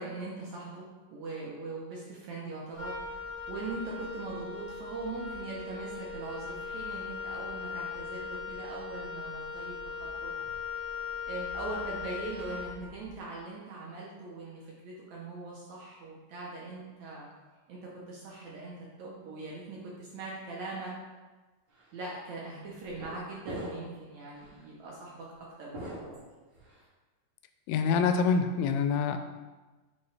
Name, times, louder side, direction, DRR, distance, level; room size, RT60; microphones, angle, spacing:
voice 1, 0.0-10.3 11.3-17.3 17.7-21.0 21.9-26.2, right 3 dB, 70° right, -4 dB, 1.8 m, -41 dB
Wind instrument woodwind instrument, 2.7-13.2, left 5 dB, 25° left, 0.9 m, -39 dB
sound 1, 21.7-21.9 22.8-23.2 23.4-24.0 24.4-24.6 25.7-26.8, right 1 dB, 40° right, 1.9 m, -42 dB
voice 2, 27.7-29.2, left 5 dB, 85° left, 8 dB, 2.3 m, -26 dB
8.5 x 3.6 x 3.3 m, 1.2 s
omnidirectional pair, 4.2 m